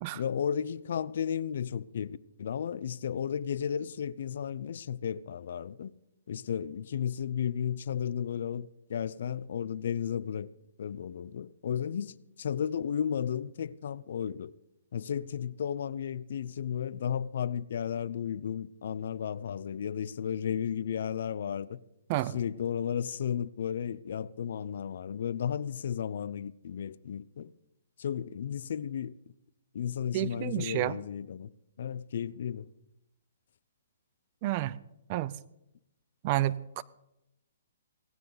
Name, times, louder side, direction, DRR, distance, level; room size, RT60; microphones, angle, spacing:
voice 1, 0.1-5.9 6.3-10.5 10.8-14.5 14.9-21.8 22.3-27.5 28.0-29.1 29.7-31.5 31.8-32.7, left 8 dB, 65° left, 0.5 m, -34 dB
voice 2, 30.1-31.0 34.4-34.8 35.1-35.3 36.2-36.8, right 15 dB, 35° right, 0.5 m, -30 dB
17.5 x 16.0 x 4.0 m
hypercardioid pair, 150°, 0 cm